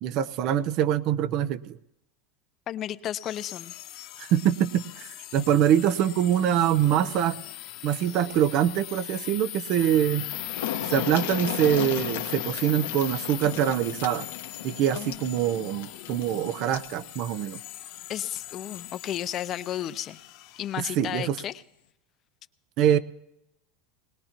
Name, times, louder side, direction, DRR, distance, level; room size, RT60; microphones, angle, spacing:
voice 1, 0.0-1.8 4.2-7.4 7.8-10.3 10.9-14.2 14.6-17.6 21.0-21.4 22.8-23.0, right 10 dB, 55° right, 15 dB, 0.7 m, -24 dB
voice 2, 2.7-3.7 14.9-15.2 18.1-20.2 20.6-21.6, left 11 dB, 40° left, 14 dB, 0.6 m, -33 dB
sound 1, 3.2-20.8, left 15 dB, 60° left, 1.1 m, -40 dB
sound 2, 9.8-9.9 10.1-16.9 18.2-18.4 18.8-18.9, left 11 dB, 80° left, 1.1 m, -36 dB
20.5 x 19.5 x 3.0 m, 0.83 s
hypercardioid pair, 105°, 0 cm